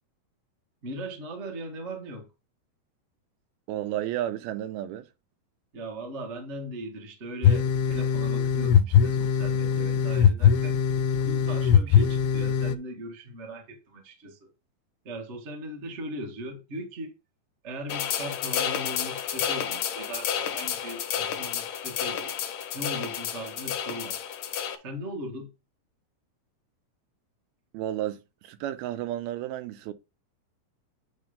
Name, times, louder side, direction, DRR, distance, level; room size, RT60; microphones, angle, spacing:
voice 1, 0.8-2.3 5.7-10.8 11.2-14.5 15.0-17.2 17.6-22.3 22.7-24.2 24.8-25.5, right 1 dB, 60° right, 0.7 m, -39 dB
voice 2, 3.7-5.1 27.7-29.9, right 12 dB, 85° right, 2.7 m, -32 dB
sound 1, 7.4-12.7, left 8 dB, 85° left, 2.6 m, -21 dB
sound 2, 17.9-24.8, left 9 dB, 65° left, 2.5 m, -31 dB
9.2 x 3.4 x 5.1 m
omnidirectional pair, 4.3 m